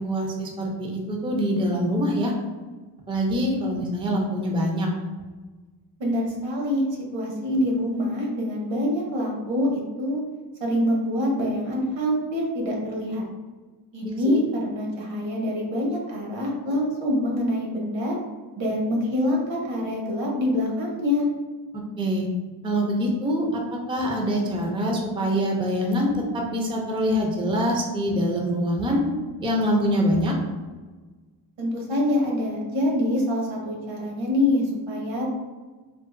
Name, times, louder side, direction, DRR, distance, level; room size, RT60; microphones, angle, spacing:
voice 1, 0.0-2.3 3.1-4.9 14.3-14.4 22.0-22.3 22.6-23.6 23.9-29.0 29.4-30.3, equal, 10° right, 0 dB, 0.4 m, -24 dB
voice 2, 6.0-6.8 7.1-10.2 10.6-13.2 13.9-18.1 18.6-21.2 31.6-35.3, left 1 dB, 85° right, -1 dB, 1.1 m, -25 dB
3.8 x 2.5 x 2.4 m, 1.3 s
cardioid pair, 140°, 44 cm